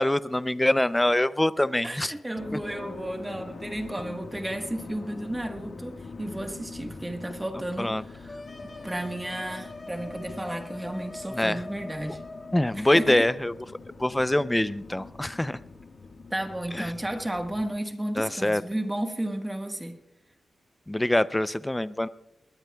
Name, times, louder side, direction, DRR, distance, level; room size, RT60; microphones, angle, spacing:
voice 1, 0.0-2.1 7.8-8.0 11.3-11.6 12.5-13.5 14.0-15.6 16.7-16.9 18.2-18.6 20.9-22.1, left 1 dB, 10° left, 0.5 m, -24 dB
voice 2, 1.8-8.4 8.8-12.2 12.7-13.3 16.3-20.0, right 1 dB, 10° right, 1.4 m, -33 dB
sound 1, 2.3-17.7, left 4 dB, 55° left, 1.5 m, -44 dB
sound 2, 8.3-12.7, left 2 dB, 30° left, 4.7 m, -42 dB
21.0 x 19.5 x 2.3 m
wide cardioid pair, 110°, 0 cm